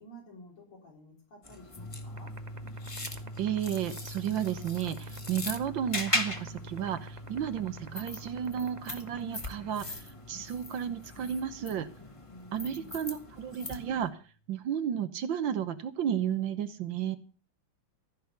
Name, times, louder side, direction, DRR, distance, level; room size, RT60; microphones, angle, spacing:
voice 1, 0.0-2.4 12.3-13.0, equal, 85° left, -1 dB, 4.9 m, -52 dB
sound 1, 1.4-14.1, left 1 dB, 20° left, 1.1 m, -40 dB
sound 2, 1.8-13.6, equal, 5° right, 1.2 m, -46 dB
sound 3, 2.2-9.7, right 5 dB, 90° right, 0.3 m, -46 dB
voice 2, 3.4-11.9 12.5-14.2 14.5-17.2, right 9 dB, 70° right, 11 dB, 1.6 m, -33 dB
14.5 x 6.1 x 8.1 m, 0.38 s
omnidirectional pair, 2.3 m